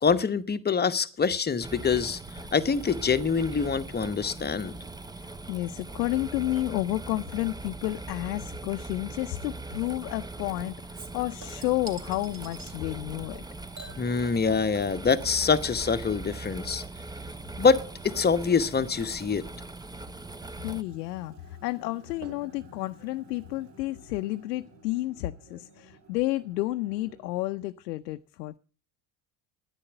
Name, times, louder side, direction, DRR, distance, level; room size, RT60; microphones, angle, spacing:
voice 1, 0.0-2.2 2.5-4.8 14.0-16.8 17.6-19.4, left 5 dB, 20° left, 1.1 m, -25 dB
sound 1, 1.6-20.8, right 2 dB, 10° right, 0.8 m, -40 dB
voice 2, 5.2-13.4 20.6-28.6, left 17 dB, 85° left, 0.7 m, -31 dB
Chink clink / Liquid, 10.9-12.8 13.7-14.9 15.2-24.2 24.5-24.6, right 3 dB, 35° right, 3.6 m, -51 dB
brain claim growl dre fx, 20.8-27.6, right 2 dB, 75° right, 4.3 m, -54 dB
10.0 x 9.9 x 7.9 m
hypercardioid pair, 80°, 48 cm